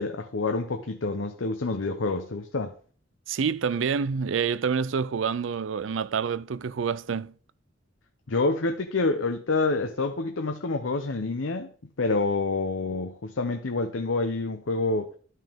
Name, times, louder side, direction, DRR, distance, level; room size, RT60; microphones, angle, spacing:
voice 1, 0.0-2.7 8.3-11.7 12.0-15.1, left 3 dB, 85° left, 0.8 m, -27 dB
voice 2, 3.3-7.3, right 6 dB, 80° right, 0.4 m, -27 dB
12.0 x 5.5 x 3.6 m
head